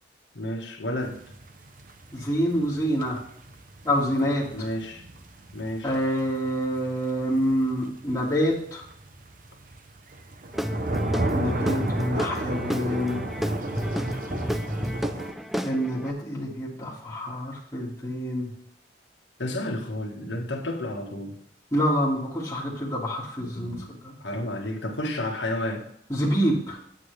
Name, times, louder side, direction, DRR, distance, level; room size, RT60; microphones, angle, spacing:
voice 1, 0.3-1.2 4.5-5.1 5.5-6.0 19.4-21.4 23.4-23.8 24.2-25.8, left 1 dB, 80° left, 3 dB, 1.5 m, -31 dB
sound 1, 1.0-15.3, right 1 dB, 45° right, 0.7 m, -34 dB
voice 2, 2.1-3.2 3.8-4.4 5.8-8.8 11.2-13.2 15.6-18.5 21.7-23.8 24.0-24.1 26.1-26.8, equal, 15° left, -7 dB, 1.9 m, -26 dB
Guitar / Drum, 10.5-16.1, equal, ahead, 0.3 m, -31 dB
8.8 x 8.4 x 3.3 m, 0.68 s
head